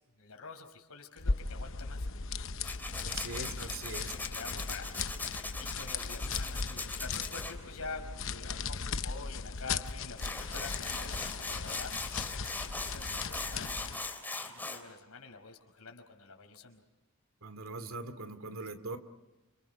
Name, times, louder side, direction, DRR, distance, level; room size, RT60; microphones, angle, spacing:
voice 1, 0.2-2.1 3.6-5.1 5.6-12.5 12.7-14.0 14.5-16.8, left 4 dB, 80° left, 4 dB, 5.1 m, -47 dB
sound 1, 1.2-14.1, left 4 dB, 60° left, 0.9 m, -38 dB
Tools, 2.6-7.5 9.9-10.0 10.2-14.8, left 3 dB, 10° left, 3.2 m, -40 dB
voice 2, 3.0-4.1 17.4-19.0, right 3 dB, 65° right, 10 dB, 2.5 m, -41 dB
29.0 x 28.0 x 5.9 m, 1.1 s
head